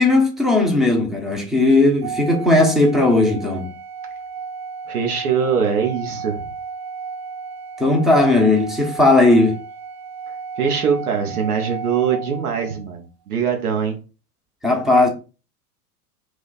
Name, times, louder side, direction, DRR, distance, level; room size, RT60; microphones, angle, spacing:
voice 1, 0.0-3.7 7.8-9.6 14.6-15.1, left 2 dB, ahead, 0.6 m, -16 dB
Organ, 2.0-12.9, right 5 dB, 45° right, 0.5 m, -33 dB
voice 2, 4.9-6.4 10.6-13.9, right 7 dB, 70° right, 0.9 m, -22 dB
3.2 x 2.1 x 3.9 m
hypercardioid pair, 95°, 46 cm